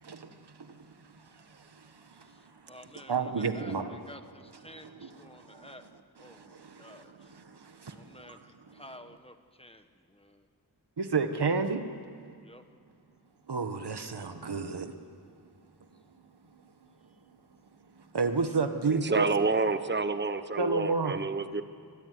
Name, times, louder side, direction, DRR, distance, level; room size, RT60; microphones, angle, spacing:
voice 1, 0.0-2.4 2.6-3.9 4.7-5.9 6.2-8.4 8.7-8.8 11.0-11.8 13.5-14.9 18.0-19.3 20.6-21.3, right 4 dB, 85° right, 8 dB, 1.7 m, -32 dB
voice 2, 2.7-5.8 6.2-7.3 7.9-10.4 12.4-12.6 18.5-18.6, left 1 dB, 15° left, 7 dB, 1.5 m, -51 dB
voice 3, 18.9-21.6, right 3 dB, 25° right, 10 dB, 1.0 m, -29 dB
24.5 x 20.5 x 9.7 m, 2.2 s
wide cardioid pair, 65°, 39 cm